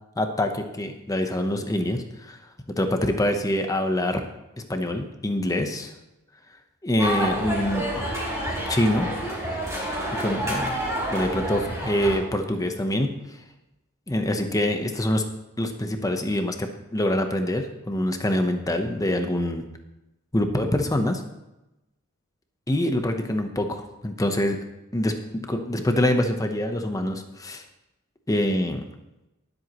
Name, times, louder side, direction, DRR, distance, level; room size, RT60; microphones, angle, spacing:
voice 1, 0.2-2.4 2.7-4.2 4.7-5.9 6.8-8.0 8.7-9.1 10.2-10.8 11.1-13.1 14.1-15.2 15.6-19.6 20.3-21.2 22.7-24.6 24.9-25.1 25.5-27.6 28.3-28.8, left 1 dB, 15° left, 5 dB, 0.9 m, -25 dB
sound 1, 7.0-12.2, right 1 dB, 15° right, 4.5 m, -28 dB
20.0 x 7.9 x 3.0 m, 0.96 s
head